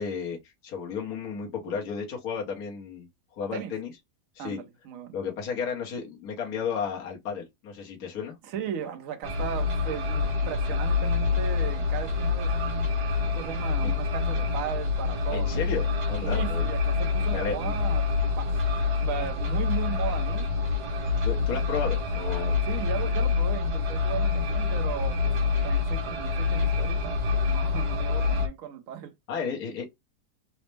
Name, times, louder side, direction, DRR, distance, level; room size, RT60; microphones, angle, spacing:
voice 1, 0.0-3.1 3.3-3.9 4.3-4.6 5.1-8.4 13.8-13.9 15.3-16.7 17.3-17.7 21.2-22.6 29.3-29.9, left 6 dB, 70° left, 1.4 m, -33 dB
voice 2, 4.4-5.1 8.4-12.9 13.2-15.7 16.2-18.1 18.4-18.5 19.0-20.5 22.7-25.4 25.6-29.1, right 8 dB, 60° right, 1.1 m, -36 dB
sound 1, 9.2-28.5, left 4 dB, 90° right, 1.6 m, -26 dB
4.1 x 2.0 x 3.2 m
omnidirectional pair, 1.7 m